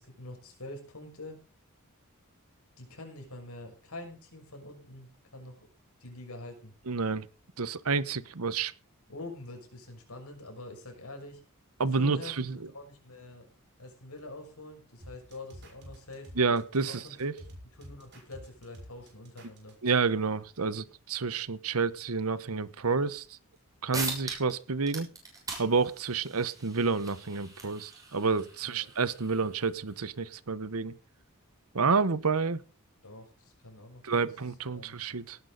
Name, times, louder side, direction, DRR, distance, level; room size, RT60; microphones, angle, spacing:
voice 1, 0.0-1.4 2.8-5.7 6.0-6.7 9.1-11.4 12.0-12.4 12.7-13.5 13.8-16.3 16.9-17.1 17.8-19.7 28.6-28.9 33.0-34.3 34.7-35.0, left 2 dB, 75° left, 4 dB, 6.2 m, -45 dB
voice 2, 6.9-7.3 7.6-8.7 11.8-12.6 16.4-17.3 19.8-23.4 23.8-25.1 25.6-30.9 31.7-32.6 34.0-35.4, right 4 dB, 75° right, 17 dB, 1.0 m, -29 dB
sound 1, 15.0-19.9, equal, 50° right, 6.2 m, -49 dB
sound 2, 23.6-23.7 23.9-24.6 24.8-30.0, right 3 dB, 15° right, 6.7 m, -41 dB
18.0 x 11.0 x 4.0 m, 0.35 s
head